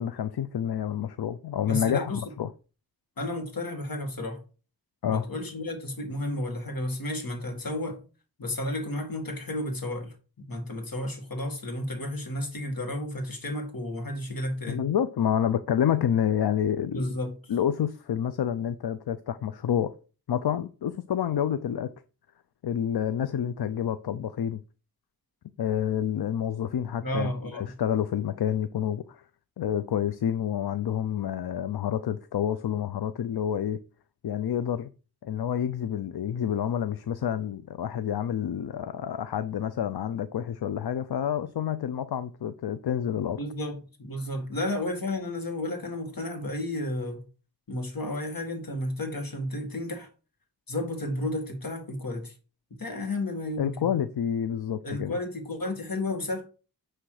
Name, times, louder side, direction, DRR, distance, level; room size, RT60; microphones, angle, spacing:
voice 1, 0.0-2.5 5.0-5.3 14.7-17.1 17.5-19.9 20.3-21.9 22.6-24.6 25.6-29.2 29.6-33.8 34.2-34.9 35.2-43.4 53.6-55.2, left 9 dB, 80° left, 0.5 m, -28 dB
voice 2, 1.7-2.2 3.2-4.4 5.1-8.0 8.4-14.9 16.9-17.5 27.0-27.8 43.4-47.2 47.7-50.1 50.7-52.3 52.7-53.9 54.8-56.5, left 1 dB, 65° left, 1.9 m, -32 dB
9.9 x 3.3 x 4.8 m
wide cardioid pair, 75°, 38 cm